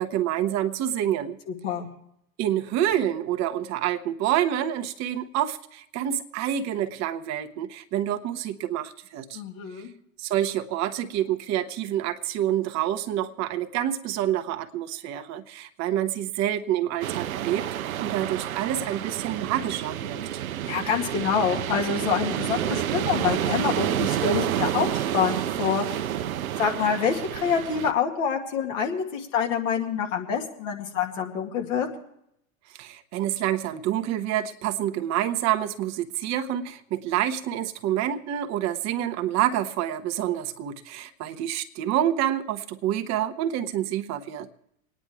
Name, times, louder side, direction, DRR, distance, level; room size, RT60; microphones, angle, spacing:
voice 1, 0.0-1.4 2.4-9.4 10.2-17.7 18.0-20.2 32.7-44.5, right 11 dB, 40° right, 7 dB, 1.0 m, -27 dB
voice 2, 1.5-1.9 9.3-9.9 20.7-25.9 26.6-31.9, left 7 dB, 65° left, 2 dB, 2.2 m, -26 dB
sound 1, 17.0-27.9, right 11 dB, 80° right, 0.8 m, -29 dB
27.0 x 9.9 x 3.5 m, 0.77 s
hypercardioid pair, 95°, 42 cm